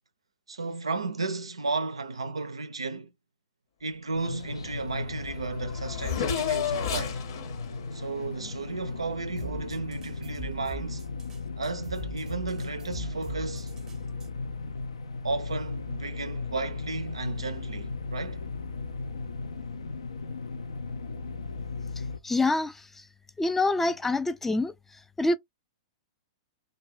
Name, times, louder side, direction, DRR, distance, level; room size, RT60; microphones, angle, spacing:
voice 1, 0.5-3.1 3.8-7.2 7.9-11.0 11.6-13.7 15.2-18.4, right 3 dB, 85° right, 0.4 m, -34 dB
sound 1, 4.1-22.2, left 4 dB, 80° left, 0.4 m, -36 dB
Race car auto racing / Accelerating revving vroom, 4.9-5.0 5.2-9.2, left 8 dB, 65° left, 0.9 m, -33 dB
sound 2, 9.4-14.3, right 7 dB, 20° right, 0.7 m, -43 dB
voice 2, 22.2-22.8 23.4-24.7 25.2-25.3, left 2 dB, 10° left, 0.3 m, -25 dB
2.3 x 2.1 x 2.6 m
hypercardioid pair, 110°, 3 cm